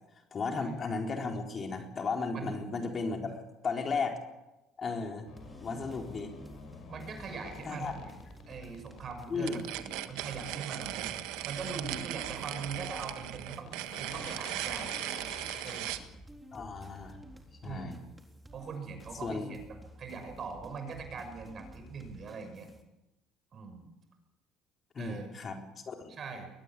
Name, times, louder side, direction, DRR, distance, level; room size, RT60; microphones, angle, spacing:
voice 1, 0.3-4.2 4.8-5.3 5.6-6.4 7.6-7.9 9.3-9.6 16.5-17.2 17.6-18.0 19.2-19.6 24.9-25.6 25.9-26.1, left 4 dB, 35° left, 3 dB, 4.2 m, -35 dB
voice 2, 2.3-2.6 6.9-8.1 8.5-11.2 11.4-15.0 15.6-15.9 17.6-17.9 18.5-19.6 20.0-22.7 23.5-23.9 25.0-25.3 26.1-26.5, right 5 dB, 40° right, 6 dB, 6.3 m, -42 dB
sound 1, 5.3-15.9, left 5 dB, 55° left, 6.2 m, -49 dB
sound 2, 5.4-22.8, right 1 dB, 10° right, 3.9 m, -52 dB
sound 3, 9.4-16.1, right 14 dB, 85° right, 1.5 m, -38 dB
22.5 x 19.0 x 8.6 m, 0.99 s
supercardioid pair, 105°, 0 cm